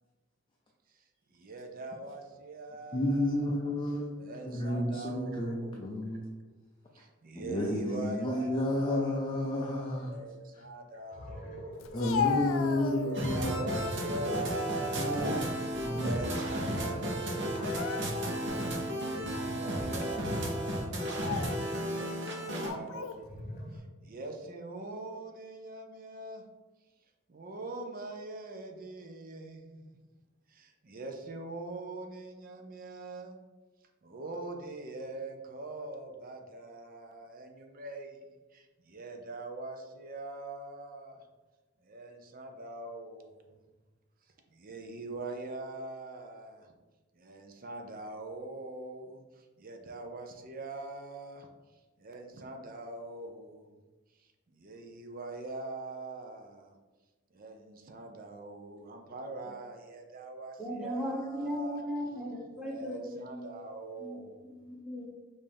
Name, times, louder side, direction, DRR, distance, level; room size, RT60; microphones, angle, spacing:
voice 1, 1.3-3.6 4.2-6.2 6.9-9.2 9.8-12.0 13.0-18.1 19.0-21.4 21.8-26.4 27.3-30.1 30.5-33.4 34.0-38.2 38.5-41.3 41.8-43.6 44.5-46.7 47.1-51.5 52.0-53.8 54.2-56.8 57.3-61.8 62.5-64.5, right 2 dB, 45° right, 4 dB, 0.6 m, -43 dB
voice 2, 2.9-4.1 4.4-6.3 7.4-10.1 11.9-13.5 15.0-15.4 15.8-16.1, left 1 dB, 25° left, -1 dB, 0.4 m, -31 dB
sound 1, 10.4-10.5 10.9-21.5 22.8-23.8, equal, 40° left, 0.8 m, -47 dB
Speech, 11.8-13.4 13.9-14.5 15.0-16.2 16.4-16.7 17.4-18.4 19.0-19.1 19.9-20.2 20.9-21.6 22.5-23.2, left 6 dB, 85° left, 0.3 m, -36 dB
sound 2, 13.1-22.7, equal, 60° right, 0.9 m, -34 dB
voice 3, 60.6-63.6 64.0-64.2 64.5-65.1, equal, 5° right, -4 dB, 1.0 m, -37 dB
5.4 x 2.7 x 3.4 m, 1.2 s
head